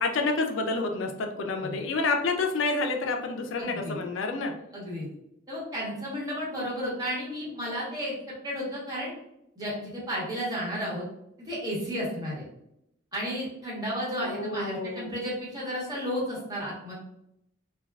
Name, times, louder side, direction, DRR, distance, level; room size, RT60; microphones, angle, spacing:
voice 1, 0.0-4.5 14.2-15.1, left 3 dB, 85° left, 4 dB, 0.4 m, -29 dB
voice 2, 3.6-4.0 4.7-5.1 5.5-8.1 8.4-9.1 9.6-11.0 11.4-12.4 13.1-16.9, equal, 20° right, -6 dB, 1.1 m, -33 dB
3.4 x 2.3 x 2.3 m, 0.79 s
head